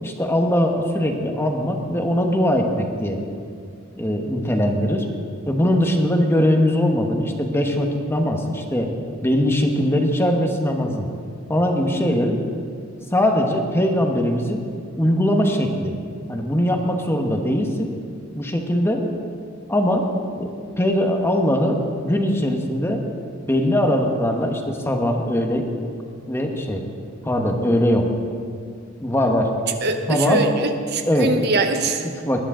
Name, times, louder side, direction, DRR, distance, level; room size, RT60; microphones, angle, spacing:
voice 1, 0.0-3.2 4.0-5.1 5.5-8.9 9.2-11.1 11.5-12.4 13.1-14.6 14.9-16.0 16.3-17.9 18.3-19.1 19.7-20.5 20.8-23.0 23.5-25.7 26.3-26.9 27.2-28.1 29.0-29.5 30.1-30.5 31.1-31.4 32.1-32.4, equal, 10° left, 3 dB, 1.1 m, -21 dB
voice 2, 29.8-32.1, right 3 dB, 55° right, 6 dB, 0.9 m, -22 dB
19.5 x 11.0 x 3.8 m, 2.3 s
head